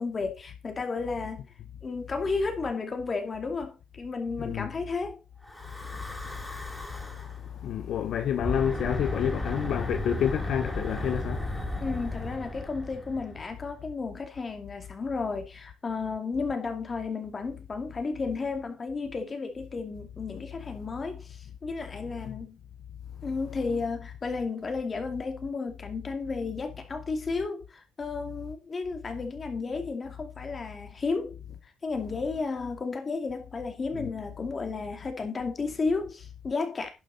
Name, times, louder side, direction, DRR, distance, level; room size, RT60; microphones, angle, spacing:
voice 1, 0.0-1.5 1.8-5.2 11.8-22.6 23.2-31.4 31.8-36.9, left 4 dB, 35° left, 2.6 m, -33 dB
voice 2, 4.4-4.7 5.9-11.9 22.3-22.4 33.9-34.1, left 9 dB, 75° left, 0.7 m, -30 dB
Breathing / Wind, 5.4-7.4 8.3-13.7, left 1 dB, 5° left, 3.6 m, -35 dB
11.0 x 7.1 x 4.1 m
cardioid pair, 90°, 0 cm